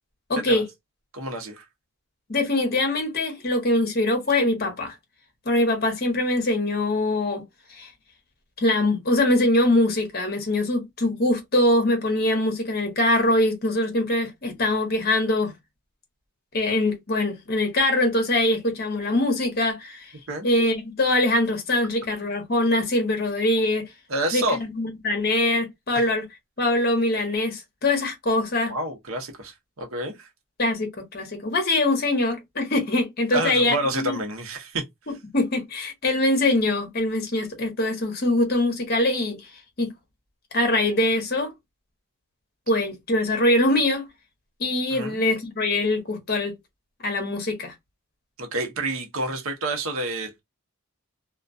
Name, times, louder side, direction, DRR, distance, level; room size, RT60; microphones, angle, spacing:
voice 1, 0.3-0.6 2.3-4.9 5.5-7.4 7.7-7.9 8.6-15.5 16.5-20.1 20.4-23.9 24.3-26.2 26.6-28.7 30.6-34.2 35.3-39.4 39.8-39.9 40.5-41.5 42.7-44.0 44.6-46.5 47.0-47.7, left 1 dB, 45° left, 0.8 m, -23 dB
voice 2, 1.1-1.6 20.3-20.5 24.1-24.6 25.9-26.1 28.7-30.3 33.3-34.8 44.9-45.2 48.4-50.4, right 1 dB, 75° right, 0.7 m, -29 dB
2.2 x 2.2 x 2.5 m
head